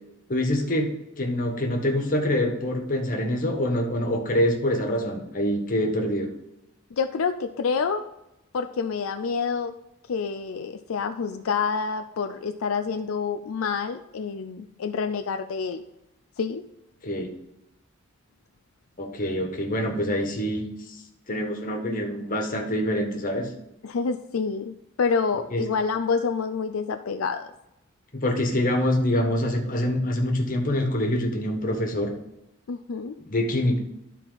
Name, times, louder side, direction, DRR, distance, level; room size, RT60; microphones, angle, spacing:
voice 1, 0.3-0.9 1.2-6.3 17.0-17.3 19.0-21.0 21.3-23.5 25.5-25.6 28.1-32.1 33.2-33.8, left 1 dB, 40° left, 2 dB, 1.4 m, -25 dB
voice 2, 6.9-8.0 8.5-9.7 10.1-15.8 16.4-16.6 23.8-27.5 32.7-33.2, left 5 dB, 85° left, 8 dB, 0.4 m, -27 dB
12.5 x 4.2 x 4.0 m, 0.89 s
head